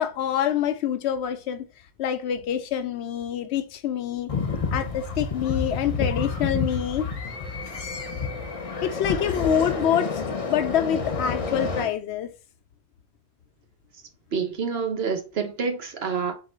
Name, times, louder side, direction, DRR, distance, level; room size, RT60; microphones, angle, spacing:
voice 1, 0.0-1.7 2.0-4.3 4.7-7.1 8.8-10.2 10.5-12.3, left 9 dB, 85° left, 0.9 m, -26 dB
sound 1, 4.3-11.8, left 4 dB, 35° left, 0.7 m, -29 dB
voice 2, 14.3-16.3, right 5 dB, 70° right, 1.2 m, -27 dB
3.8 x 2.7 x 4.2 m
omnidirectional pair, 1.1 m